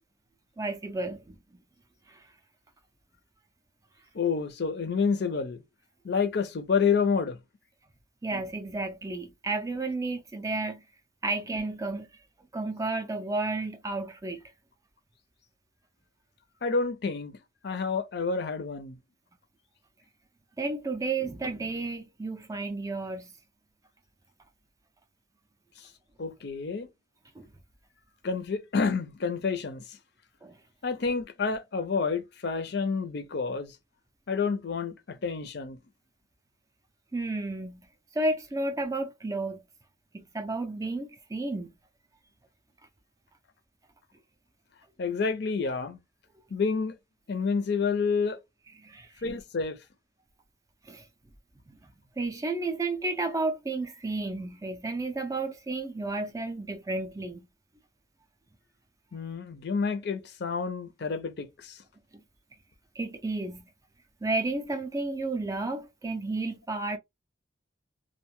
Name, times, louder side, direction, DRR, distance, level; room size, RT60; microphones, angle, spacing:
voice 1, 0.6-1.4 2.1-2.3 8.2-10.8 11.2-12.1 12.5-14.4 20.6-23.3 27.4-27.5 30.4-30.6 37.1-37.8 38.1-39.6 40.1-41.7 48.8-49.2 50.8-51.1 51.7-51.8 52.2-57.5 63.0-63.6 64.2-67.0, right 2 dB, 15° right, 0.3 m, -32 dB
voice 2, 4.1-5.6 6.0-7.4 16.6-17.4 17.6-19.0 26.2-26.9 28.2-29.8 30.8-33.7 34.3-35.8 45.0-46.0 46.5-47.0 47.3-48.4 49.2-49.8 59.1-61.8, left 5 dB, 55° left, 0.5 m, -29 dB
2.5 x 2.2 x 2.9 m
head